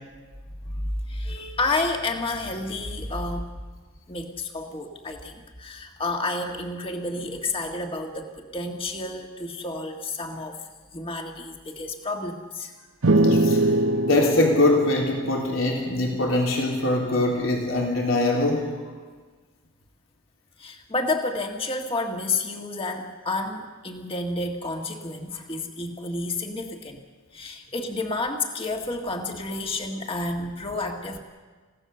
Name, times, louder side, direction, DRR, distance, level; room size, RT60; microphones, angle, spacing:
voice 1, 0.7-3.5 4.1-10.6 10.9-12.7 20.6-27.0 27.3-31.2, left 2 dB, 25° left, 3 dB, 1.7 m, -30 dB
sound 1, 13.0-16.6, right 1 dB, 85° right, 1.0 m, -23 dB
voice 2, 13.2-13.6 14.1-18.8, left 2 dB, 75° left, -1 dB, 3.4 m, -23 dB
29.0 x 16.5 x 6.8 m, 1.4 s
head